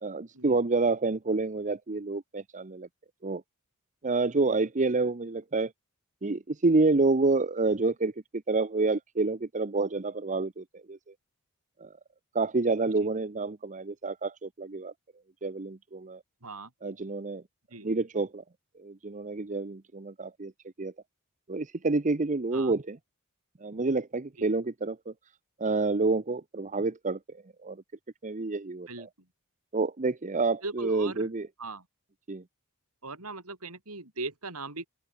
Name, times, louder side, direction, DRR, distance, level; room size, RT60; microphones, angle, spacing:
voice 1, 0.0-2.9 3.2-3.4 4.0-5.7 6.2-11.0 11.8-11.9 12.3-14.9 15.4-16.2 16.8-17.4 17.8-18.4 18.8-20.5 20.8-20.9 21.5-23.0 23.6-25.1 25.6-27.2 27.6-27.8 28.2-29.1 29.7-31.5 32.3-32.4, right 3 dB, 35° right, 0.8 m, -28 dB
voice 2, 30.6-31.3 31.6-31.9 33.0-34.9, right 3 dB, 75° right, 5.5 m, -39 dB
open air
head